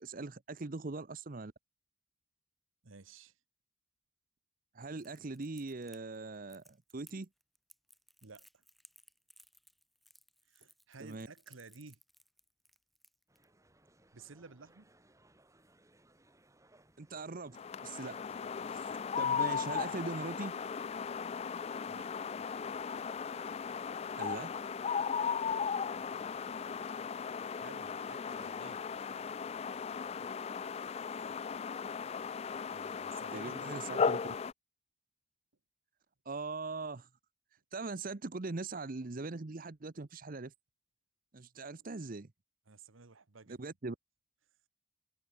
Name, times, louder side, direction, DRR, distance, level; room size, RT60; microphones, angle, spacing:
voice 1, 0.0-1.5 4.7-7.3 11.0-11.3 17.0-18.2 18.7-18.9 19.2-20.5 24.1-24.5 33.3-34.2 36.3-37.1 37.7-40.5 41.3-42.3 43.5-44.0, right 3 dB, 45° right, 0.8 m, -41 dB
voice 2, 2.8-3.4 8.2-8.6 10.5-12.0 14.1-14.9 21.9-22.1 26.0-26.1 27.3-28.8 30.7-30.9 32.7-34.1 42.7-43.8, right 4 dB, 80° right, 1.2 m, -54 dB
Crackle, 5.0-13.4, equal, ahead, 1.1 m, -63 dB
sound 1, 13.3-26.9, right 1 dB, 15° right, 2.6 m, -66 dB
sound 2, 17.5-34.5, left 6 dB, 30° left, 0.3 m, -37 dB
head